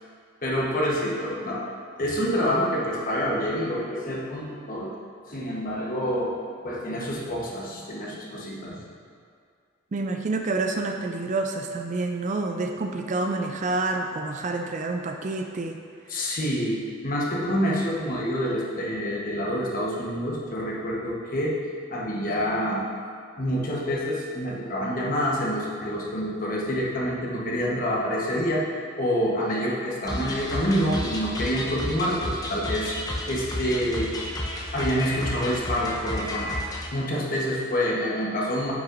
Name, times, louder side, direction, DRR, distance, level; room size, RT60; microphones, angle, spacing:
voice 1, 0.4-1.7 2.0-4.9 5.3-8.8 16.1-21.6 21.9-22.9 23.4-28.7 29.0-32.9 33.3-34.1 34.7-36.5 36.9-38.7, equal, 40° left, -4 dB, 1.1 m, -27 dB
voice 2, 9.9-15.8 16.2-16.3, right 3 dB, 35° right, 4 dB, 0.4 m, -28 dB
sound 1, 30.1-36.9, left 1 dB, 15° left, 0.6 m, -32 dB
9.1 x 5.9 x 2.5 m, 2.2 s
head